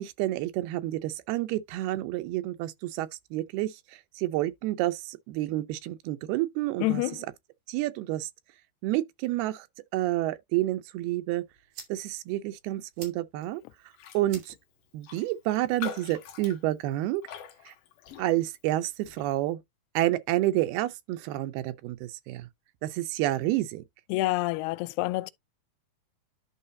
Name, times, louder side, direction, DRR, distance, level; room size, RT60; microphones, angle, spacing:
voice 1, 0.0-7.0 7.7-8.3 8.8-9.7 9.9-11.4 11.9-13.6 14.1-14.5 14.9-17.2 17.7-17.8 18.2-19.6 20.0-22.5 22.8-23.8, right 15 dB, 80° right, 2.6 m, -29 dB
voice 2, 6.8-7.2 24.1-25.3, left 19 dB, 85° left, 2.5 m, -27 dB
sound 1, 11.1-17.1, right 6 dB, 60° right, 4.1 m, -53 dB
Raindrop, 13.9-14.3 14.6-14.7 15.0-18.6 19.0-19.3, left 8 dB, 65° left, 2.4 m, -43 dB
11.5 x 3.9 x 2.7 m
omnidirectional pair, 4.6 m